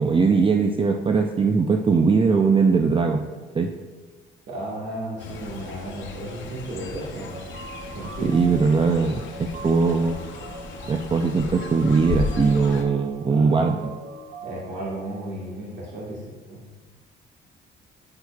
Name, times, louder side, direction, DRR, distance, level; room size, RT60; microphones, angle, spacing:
voice 1, 0.0-3.2 3.5-3.7 8.2-10.2 10.9-13.9, right 4 dB, 25° right, 4 dB, 0.5 m, -20 dB
voice 2, 4.5-7.4 7.9-8.6 13.2-13.8 14.4-16.2 16.5-16.6, right 1 dB, 65° right, -6 dB, 1.6 m, -34 dB
Fowl, 5.2-12.8, left 4 dB, 70° left, 0.9 m, -35 dB
sound 1, 7.3-15.3, right 4 dB, 50° right, 0.9 m, -42 dB
9.6 x 6.3 x 2.3 m, 1.3 s
cardioid pair, 90°, 20 cm